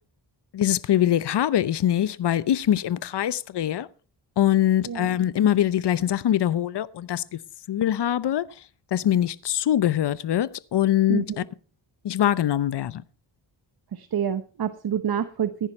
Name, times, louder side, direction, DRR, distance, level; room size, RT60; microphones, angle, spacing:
voice 1, 0.5-3.9 4.4-7.2 7.7-8.5 8.9-11.4 12.0-13.0, left 11 dB, 65° left, 0.8 m, -23 dB
voice 2, 11.1-11.4 13.9-15.7, right 8 dB, 55° right, 1.0 m, -27 dB
15.0 x 10.5 x 4.3 m
wide cardioid pair, 100°, 44 cm